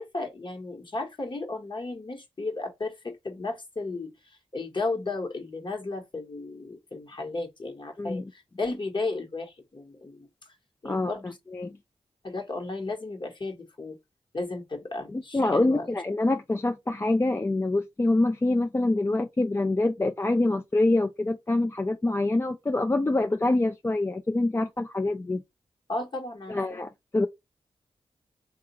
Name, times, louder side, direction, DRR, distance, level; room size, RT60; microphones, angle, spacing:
voice 1, 0.0-4.1 4.5-10.3 10.8-11.4 12.2-14.0 14.3-15.9 25.9-26.8, left 3 dB, 45° left, 1.2 m, -34 dB
voice 2, 10.8-11.8 15.1-25.4 26.5-27.3, left 2 dB, 20° left, 0.4 m, -25 dB
3.6 x 2.3 x 2.9 m
cardioid pair, 40°, 11 cm